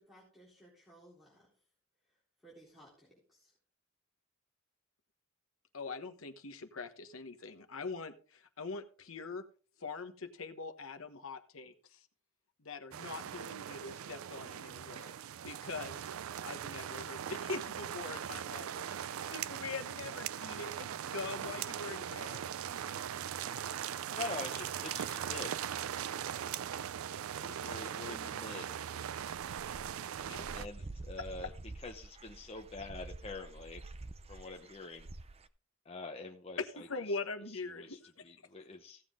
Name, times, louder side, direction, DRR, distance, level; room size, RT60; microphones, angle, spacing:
voice 1, 0.0-1.5 2.1-2.2 2.4-3.5, right 1 dB, ahead, -6 dB, 3.8 m, -59 dB
voice 2, 5.7-9.4 9.8-12.0 12.6-15.1 15.4-16.0 16.4-22.4 30.3-30.5 31.2-31.3 36.6-38.2, left 4 dB, 75° left, 7 dB, 1.3 m, -43 dB
sound 1, 12.9-30.7, right 9 dB, 80° right, 0.4 m, -40 dB
voice 3, 24.1-25.5 27.4-28.8 30.5-31.5 31.8-33.8 34.3-35.1 35.8-36.9 37.5-38.0 38.2-39.0, left 3 dB, 30° left, 2 dB, 0.9 m, -45 dB
Dog / Bird, 29.3-35.5, right 2 dB, 30° right, 0.6 m, -48 dB
16.0 x 7.5 x 3.7 m, 0.41 s
head